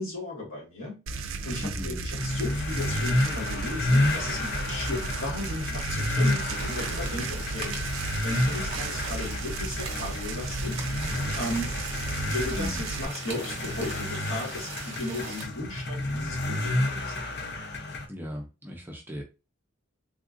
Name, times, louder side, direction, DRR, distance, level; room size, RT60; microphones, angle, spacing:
voice 1, 0.0-10.9 11.3-11.7 12.3-17.2, left 1 dB, 70° left, 1.7 m, -36 dB
sound 1, 1.1-13.1, right 4 dB, 75° right, 0.4 m, -35 dB
voice 2, 1.6-2.0 12.5-12.8 18.1-19.2, left 1 dB, 10° right, 0.5 m, -36 dB
sound 2, 2.2-18.0, left 1 dB, 50° left, 0.6 m, -30 dB
sound 3, 6.5-15.5, right 4 dB, 30° right, 0.9 m, -41 dB
3.4 x 2.4 x 2.5 m
head